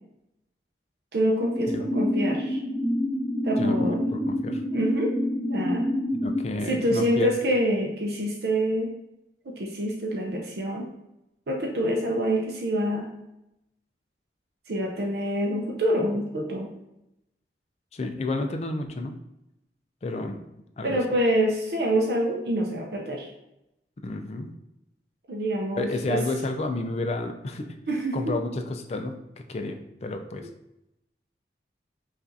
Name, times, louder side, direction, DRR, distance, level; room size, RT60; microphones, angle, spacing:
voice 1, 1.1-2.6 3.4-4.0 4.7-5.1 5.5-5.9 6.6-8.9 9.5-10.9 11.5-13.1 14.7-16.7 20.8-23.3 25.3-26.2 27.9-28.3, right 1 dB, 65° right, -1 dB, 0.5 m, -26 dB
sound 1, 1.4-6.4, left 1 dB, ahead, 1.0 m, -27 dB
voice 2, 3.6-4.6 6.1-7.3 17.9-19.1 20.0-20.4 20.8-21.0 24.0-24.5 25.8-27.8 28.1-30.5, left 2 dB, 35° left, 5 dB, 0.4 m, -31 dB
5.5 x 2.5 x 2.6 m, 0.88 s
head